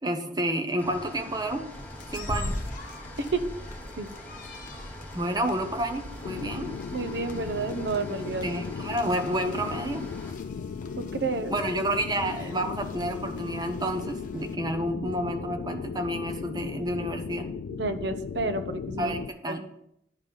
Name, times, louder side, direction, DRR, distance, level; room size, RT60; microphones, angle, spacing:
voice 1, 0.0-1.6 2.1-2.5 5.1-6.8 8.4-10.0 11.5-17.5 19.0-19.6, right 1 dB, 25° right, 6 dB, 0.9 m, -30 dB
sound 1, 0.8-10.3, left 1 dB, 10° left, 2.4 m, -44 dB
sound 2, 1.7-14.6, left 1 dB, 50° left, 1.1 m, -42 dB
sound 3, 6.2-19.3, left 6 dB, 70° left, 0.3 m, -36 dB
voice 2, 6.9-8.5 11.0-11.5 17.7-19.1 19.5-19.7, right 3 dB, 75° right, 9 dB, 0.8 m, -30 dB
10.0 x 5.2 x 5.5 m, 0.76 s
head